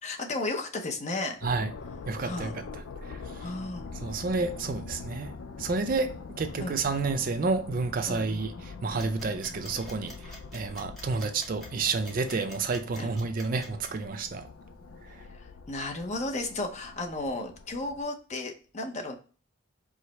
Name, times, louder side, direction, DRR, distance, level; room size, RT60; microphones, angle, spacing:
voice 1, 0.0-1.4 2.2-2.6 3.4-3.9 6.6-6.8 8.0-8.3 10.3-10.4 13.0-13.1 15.3-19.2, left 2 dB, 35° left, 0.7 m, -34 dB
sound 1, 1.4-18.0, left 4 dB, 90° left, 0.4 m, -44 dB
voice 2, 2.1-2.6 3.1-3.2 4.0-5.3 5.6-8.5 8.8-14.5, right 4 dB, 45° right, 0.5 m, -30 dB
sound 2, 9.0-13.9, left 1 dB, ahead, 0.9 m, -48 dB
4.7 x 2.1 x 4.0 m
head